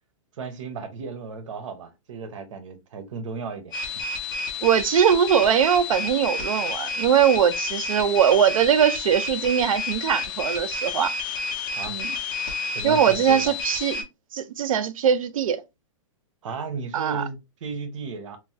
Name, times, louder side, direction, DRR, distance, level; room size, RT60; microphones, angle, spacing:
voice 1, 0.4-3.7 11.7-11.9 12.7-13.5 16.4-18.4, right 4 dB, 65° right, 0.8 m, -35 dB
sound 1, 3.7-14.0, left 3 dB, 35° left, 0.7 m, -30 dB
voice 2, 4.6-11.1 11.9-12.2 12.8-14.1 14.3-15.6 16.9-17.2, right 8 dB, 90° right, 0.5 m, -21 dB
3.0 x 2.0 x 2.7 m
hypercardioid pair, 165°, 17 cm